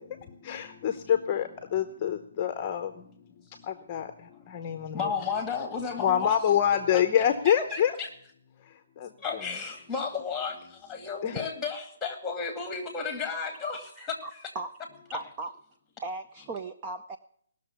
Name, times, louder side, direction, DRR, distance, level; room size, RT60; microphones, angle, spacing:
voice 1, 0.0-3.2 3.5-5.1 6.0-8.0 8.6-9.1 11.2-11.4, left 9 dB, 25° left, 8 dB, 0.9 m, -27 dB
voice 2, 4.9-6.3 7.5-8.1 9.2-10.6 10.9-14.2, left 5 dB, 5° left, 5 dB, 2.3 m, -33 dB
voice 3, 14.2-14.7 15.1-15.5 16.0-17.2, right 3 dB, 20° right, 5 dB, 0.6 m, -37 dB
18.5 x 6.6 x 8.3 m, 0.64 s
hypercardioid pair, 165°, 0 cm